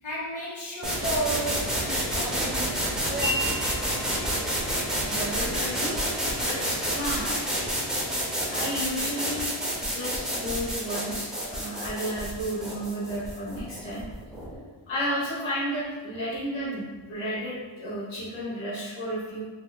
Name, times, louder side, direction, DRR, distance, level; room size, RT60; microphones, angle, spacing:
voice 1, 0.0-3.7, right 1 dB, 70° left, -7 dB, 1.3 m, -33 dB
sound 1, 0.8-14.5, equal, ahead, 0.5 m, -29 dB
Wind chime, 3.2-9.3, equal, 50° left, 1.0 m, -39 dB
voice 2, 5.0-6.0 6.3-7.3 8.5-9.5 9.8-14.0 14.9-19.4, equal, 90° left, -9 dB, 1.1 m, -32 dB
3.4 x 2.8 x 2.2 m, 1.3 s
wide cardioid pair, 125°, 47 cm